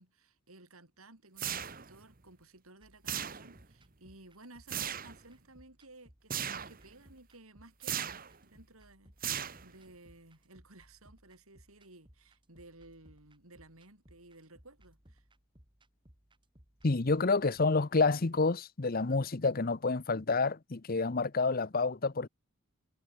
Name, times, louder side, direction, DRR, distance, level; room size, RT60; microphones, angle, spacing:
voice 1, 0.0-15.2, right 2 dB, 75° right, 5.9 m, -57 dB
sound 1, 1.4-2.0 3.1-3.7 4.7-5.2 6.3-6.8 7.8-8.4 9.2-9.9, right 9 dB, 40° right, 1.5 m, -37 dB
sound 2, 2.8-17.6, equal, 20° right, 3.2 m, -63 dB
voice 2, 16.8-22.3, left 3 dB, 40° left, 0.8 m, -29 dB
head